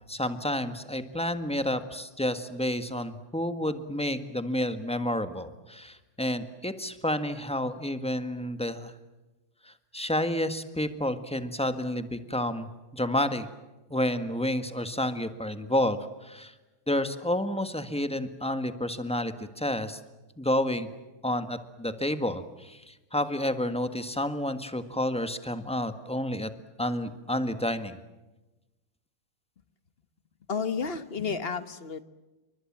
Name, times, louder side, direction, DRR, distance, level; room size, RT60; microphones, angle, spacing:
voice 1, 0.1-8.9 9.6-13.5 13.9-16.5 16.9-20.0 20.4-20.9 21.2-26.5 26.8-28.0, left 1 dB, 5° left, 9 dB, 1.3 m, -30 dB
voice 2, 30.5-32.0, left 5 dB, 35° left, 12 dB, 1.1 m, -31 dB
29.5 x 24.0 x 7.5 m, 1.1 s
omnidirectional pair, 2.4 m